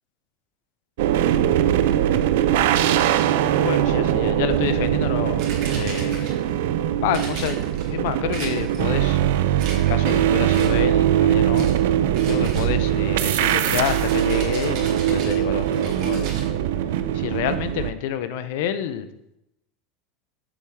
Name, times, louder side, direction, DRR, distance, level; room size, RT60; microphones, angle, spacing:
sound 1, 1.0-17.9, right 11 dB, 80° right, 0.3 m, -21 dB
voice 1, 2.6-6.3 7.0-7.6 7.9-9.2 9.8-11.7 12.3-16.3 17.1-19.1, left 10 dB, 70° left, 11 dB, 0.5 m, -29 dB
sound 2, 5.4-6.5 7.1-7.9 8.3-8.9 9.6-10.2 10.5-10.9 11.5-11.8 12.1-16.5, right 4 dB, 55° right, 1.9 m, -37 dB
7.1 x 3.5 x 4.7 m, 0.85 s
supercardioid pair, 140°, 0 cm